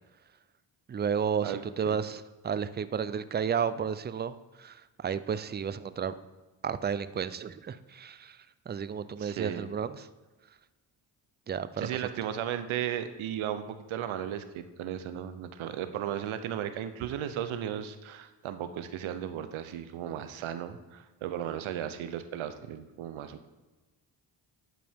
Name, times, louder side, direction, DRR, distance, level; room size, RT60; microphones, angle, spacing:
voice 1, 0.9-6.1 6.6-8.4 8.7-10.1 11.5-11.9, right 7 dB, 25° right, 14 dB, 0.4 m, -32 dB
voice 2, 9.2-9.7 11.8-23.5, right 10 dB, 75° right, 10 dB, 0.7 m, -35 dB
11.0 x 5.0 x 3.5 m, 1.2 s
supercardioid pair, 55°, 48 cm